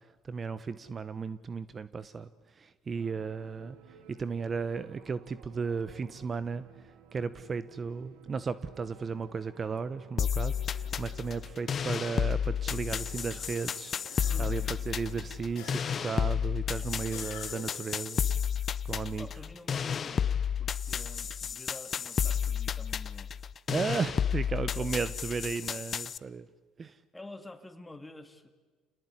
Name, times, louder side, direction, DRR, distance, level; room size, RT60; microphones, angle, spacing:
voice 1, 0.2-2.3 2.5-3.8 4.1-6.6 7.1-18.2 18.8-19.3 23.7-26.5 26.8-27.0, right 5 dB, 35° right, 15 dB, 0.9 m, -35 dB
sound 1, 2.9-16.4, right 7 dB, 85° right, 2.3 m, -56 dB
sound 2, 10.2-26.2, left 8 dB, 40° left, 0.8 m, -32 dB
sound 3, 13.5-14.7 15.5-16.3 17.1-17.9, left 11 dB, 85° left, 3.4 m, -48 dB
voice 2, 14.3-14.8 19.2-20.2 20.6-23.3 24.7-25.0 27.1-28.5, left 2 dB, 10° left, 8 dB, 2.7 m, -48 dB
28.0 x 19.0 x 9.8 m, 1.4 s
supercardioid pair, 90°, 0 cm